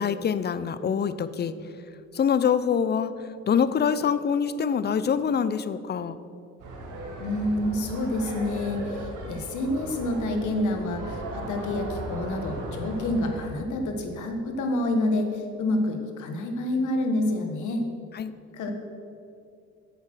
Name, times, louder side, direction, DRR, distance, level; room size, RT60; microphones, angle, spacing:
voice 1, 0.0-1.5 2.1-3.1 3.5-6.2 18.1-18.3, left 7 dB, 35° left, 14 dB, 0.5 m, -25 dB
sound 1, 6.6-13.5, right 1 dB, 85° right, 1.8 m, -37 dB
voice 2, 7.2-17.8 18.5-18.7, left 1 dB, 75° left, 4 dB, 1.3 m, -28 dB
8.0 x 6.4 x 6.2 m, 2.5 s
cardioid pair, 90°, 30 cm